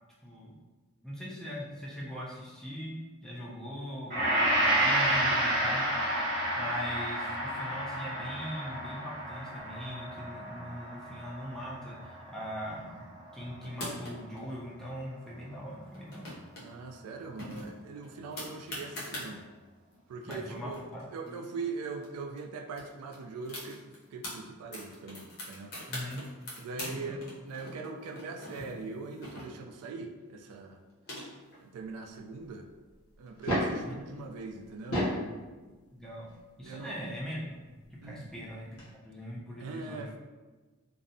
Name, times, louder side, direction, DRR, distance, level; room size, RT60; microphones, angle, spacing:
voice 1, 0.2-0.5 1.0-3.0 3.2-5.9 6.6-16.3 19.2-19.3 20.3-21.3 25.9-26.2 26.8-27.2 33.9-34.0 35.9-36.3 36.6-37.4 37.9-38.8 39.0-40.1, equal, ahead, -6 dB, 0.3 m, -41 dB
Gong, 4.1-12.5 12.9-13.0, right 1 dB, 35° right, 0.7 m, -30 dB
sound 1, 13.6-14.4 15.9-16.6 16.9-17.0 17.4-19.3 19.9-20.0 20.2-22.1 22.4-22.5 22.7-24.3 24.7-26.9 27.2-29.8 30.6-31.6, left 1 dB, 45° left, 0.6 m, -42 dB
voice 2, 16.6-19.5 20.1-20.8 21.1-25.8 26.6-30.8 31.6-32.7 33.2-35.1 36.6-37.0 38.0-38.3 39.6-40.2, right 4 dB, 85° right, 7 dB, 0.3 m, -41 dB
sound 2, 33.3-33.9 34.7-35.3 36.6-36.7 38.5-38.6 38.8-38.9, equal, 90° left, 0.8 m, -30 dB
2.6 x 2.0 x 2.5 m, 1.3 s
head